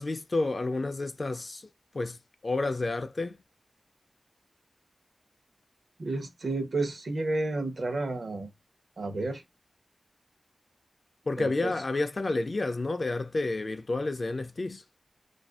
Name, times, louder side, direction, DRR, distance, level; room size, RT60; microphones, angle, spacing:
voice 1, 0.0-1.6 1.9-2.2 2.4-3.4 11.3-14.8, left 2 dB, 45° left, 0.3 m, -30 dB
voice 2, 6.0-8.5 9.0-9.4 11.4-11.7, right 2 dB, 70° right, 0.8 m, -31 dB
2.5 x 2.4 x 2.3 m
wide cardioid pair, 85°, 0 cm